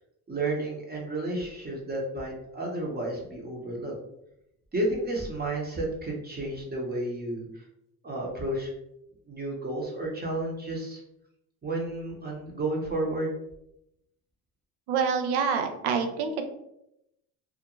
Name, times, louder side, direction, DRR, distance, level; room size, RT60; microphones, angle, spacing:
voice 1, 0.3-3.9 4.7-7.6 8.0-8.7 9.3-11.0 11.6-13.3, right 2 dB, 25° right, -1 dB, 0.8 m, -31 dB
voice 2, 14.9-16.4, right 6 dB, 75° right, 5 dB, 0.6 m, -26 dB
2.5 x 2.1 x 2.9 m, 0.82 s
supercardioid pair, 75°, 40 cm